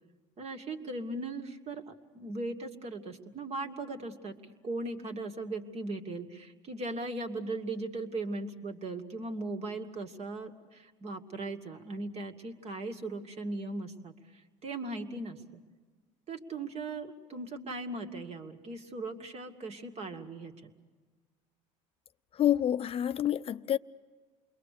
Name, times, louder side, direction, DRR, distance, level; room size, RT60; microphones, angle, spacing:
voice 1, 0.4-4.3 4.6-14.1 14.6-15.6 16.3-20.7, right 2 dB, 40° right, 2.3 m, -38 dB
voice 2, 22.3-23.8, left 11 dB, 35° left, 0.7 m, -28 dB
28.5 x 22.0 x 6.8 m
supercardioid pair, 90°, 17 cm